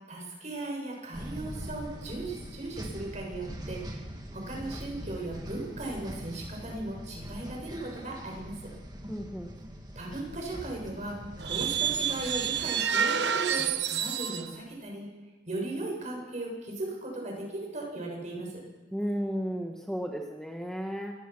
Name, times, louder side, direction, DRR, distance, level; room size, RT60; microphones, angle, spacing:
voice 1, 0.1-4.0 4.3-8.7 9.9-11.2 11.4-15.1 15.5-18.6, right 2 dB, 40° right, 0 dB, 7.6 m, -37 dB
sound 1, 1.1-12.7, equal, 20° right, 2.8 m, -42 dB
voice 2, 9.1-9.5 18.9-21.1, equal, 5° left, 1 dB, 1.6 m, -33 dB
sound 2, 11.4-14.5, right 8 dB, 70° right, 1.1 m, -29 dB
27.0 x 20.0 x 6.2 m, 1.2 s
head